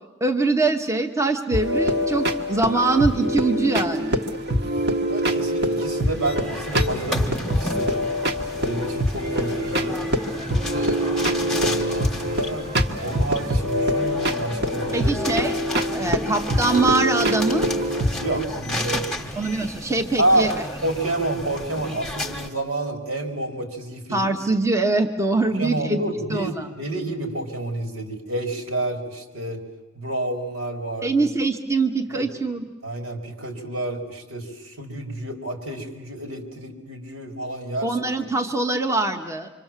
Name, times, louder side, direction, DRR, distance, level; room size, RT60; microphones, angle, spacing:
voice 1, 0.2-4.2 14.9-17.7 19.4-20.5 24.1-26.0 26.3-26.7 31.0-32.6 37.8-39.5, right 3 dB, 15° right, 4 dB, 1.0 m, -23 dB
sound 1, 1.5-18.4, equal, 50° right, 1.5 m, -24 dB
voice 2, 5.1-8.1 8.6-10.0 10.7-12.7 13.0-15.1 16.0-16.2 18.2-19.3 20.2-20.5 20.8-24.3 25.5-29.6 29.9-31.2 32.1-32.3 32.8-37.9, right 2 dB, 85° right, 2 dB, 4.0 m, -29 dB
sound 2, 5.8-22.5, left 1 dB, 5° left, 1.4 m, -33 dB
27.0 x 25.0 x 7.4 m, 1.1 s
head